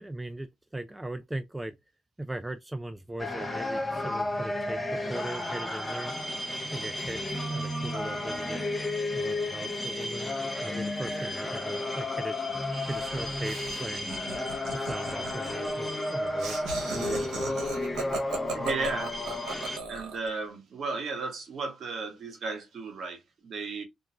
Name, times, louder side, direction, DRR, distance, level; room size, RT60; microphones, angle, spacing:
voice 1, 0.0-1.8 2.2-6.1 6.7-8.7 9.1-10.3 10.6-12.4 12.9-14.1 14.7-17.7, right 1 dB, 10° right, 0.3 m, -39 dB
sound 1, 3.2-19.8, left 1 dB, 15° left, 0.7 m, -32 dB
Laughter, 12.7-20.3, right 3 dB, 85° right, 0.9 m, -38 dB
voice 2, 18.5-19.2 19.9-23.8, right 4 dB, 60° right, 1.1 m, -34 dB
2.4 x 2.3 x 2.9 m
cardioid pair, 90°, 0 cm